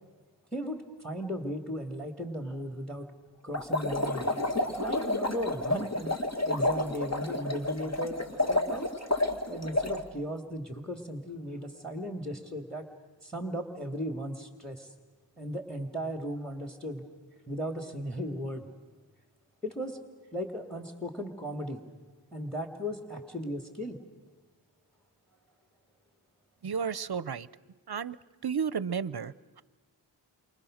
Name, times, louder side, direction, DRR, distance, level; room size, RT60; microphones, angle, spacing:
voice 1, 0.5-3.1 3.4-4.3 4.8-6.1 6.5-8.2 8.5-8.9 9.5-12.9 13.2-14.9 15.4-17.0 17.5-18.6 19.6-20.0 20.3-21.8 22.3-24.0, equal, ahead, 6 dB, 2.3 m, -36 dB
sound 1, 3.5-10.0, left 1 dB, 35° left, 2.0 m, -30 dB
voice 2, 26.6-27.5 27.9-28.2 28.4-29.6, right 6 dB, 60° right, 18 dB, 0.7 m, -32 dB
29.0 x 24.5 x 6.5 m, 1.3 s
wide cardioid pair, 45°, 45 cm